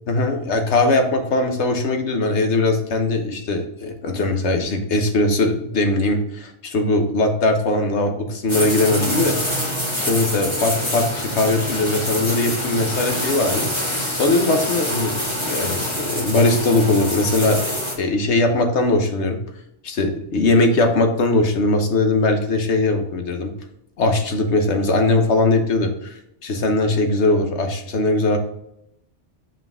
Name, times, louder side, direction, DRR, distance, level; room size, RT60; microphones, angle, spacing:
voice 1, 0.1-9.4 10.0-13.7 14.2-17.6 18.0-19.4 19.8-23.5 24.0-28.4, left 2 dB, 75° left, 5 dB, 1.3 m, -20 dB
sound 1, 8.5-17.9, left 1 dB, 25° left, 1.7 m, -25 dB
5.6 x 5.2 x 3.5 m, 0.79 s
omnidirectional pair, 1.2 m